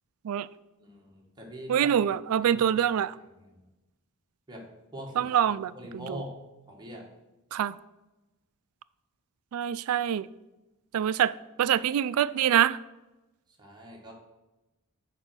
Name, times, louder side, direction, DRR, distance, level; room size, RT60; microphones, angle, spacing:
voice 1, 0.8-1.9 2.4-2.8 3.4-3.6 4.5-4.7 4.9-6.3 6.7-7.1 13.6-14.1, equal, 20° right, 1.6 m, -43 dB
voice 2, 1.7-3.1 5.2-6.2 7.5-7.7 9.5-10.3 10.9-11.3 11.6-12.8, right 9 dB, 70° right, 0.3 m, -25 dB
7.4 x 5.0 x 6.3 m
head